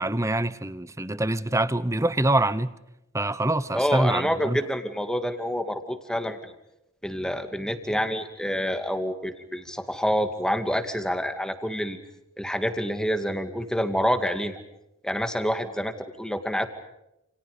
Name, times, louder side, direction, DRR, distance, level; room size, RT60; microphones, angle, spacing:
voice 1, 0.0-2.7 3.1-4.6, right 1 dB, 15° right, 1.0 m, -25 dB
voice 2, 3.7-6.5 7.0-12.0 12.4-14.6 15.0-16.7, equal, 5° left, 2.3 m, -27 dB
30.0 x 29.0 x 5.2 m
head